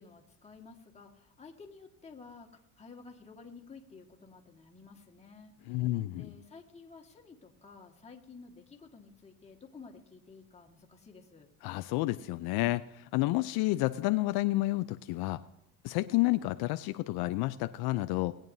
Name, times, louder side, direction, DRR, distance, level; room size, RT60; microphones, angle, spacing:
voice 1, 0.0-11.5, left 4 dB, 15° left, 0 dB, 1.7 m, -53 dB
voice 2, 5.7-6.3 11.6-15.4 15.8-18.3, left 18 dB, 70° left, 11 dB, 0.5 m, -30 dB
19.0 x 9.0 x 2.7 m, 0.87 s
cardioid pair, 115°, 40 cm